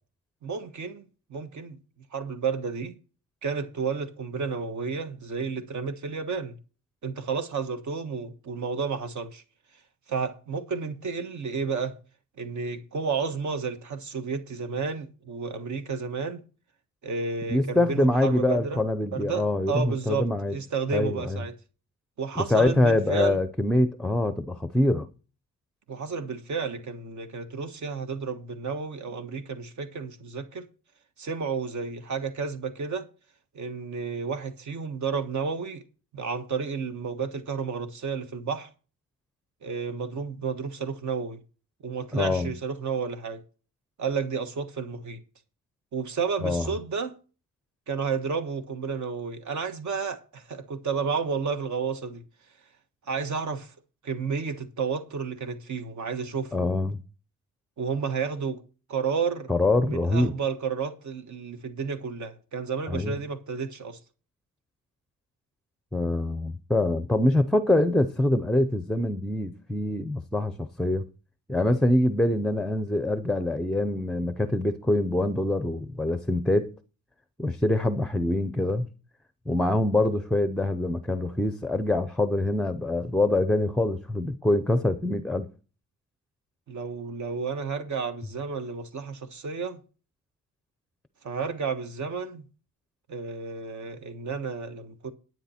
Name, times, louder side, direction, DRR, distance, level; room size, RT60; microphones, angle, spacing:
voice 1, 0.4-1.0 1.3-1.8 2.1-2.9 3.4-6.6 7.0-9.4 10.1-12.0 12.4-16.4 17.0-18.8 19.1-21.5 22.2-23.4 25.9-30.6 31.2-33.0 33.5-35.8 36.1-38.7 39.6-41.4 41.8-43.4 44.0-45.2 45.9-47.1 47.9-52.2 53.1-53.7 54.0-56.7 57.8-58.6 58.9-59.5 59.9-64.0 86.7-89.8 91.2-92.4 93.1-95.1, right 5 dB, 60° right, 1.4 m, -31 dB
voice 2, 17.5-20.6 20.9-21.4 22.4-25.1 42.1-42.5 46.4-46.7 56.5-57.0 59.5-60.3 62.9-63.2 65.9-71.1 71.5-76.7 77.4-78.9 79.5-85.5, left 1 dB, ahead, 0.6 m, -24 dB
10.5 x 9.5 x 4.3 m
wide cardioid pair, 160°, 33 cm